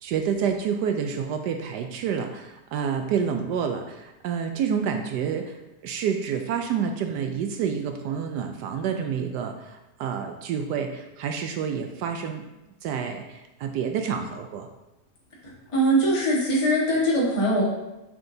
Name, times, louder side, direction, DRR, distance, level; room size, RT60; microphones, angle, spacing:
voice 1, 0.0-5.6 5.8-12.4 12.8-14.7, right 7 dB, 80° right, 5 dB, 1.1 m, -28 dB
voice 2, 15.4-17.6, right 1 dB, 20° left, -6 dB, 1.6 m, -22 dB
7.1 x 6.2 x 2.7 m, 0.96 s
omnidirectional pair, 1.8 m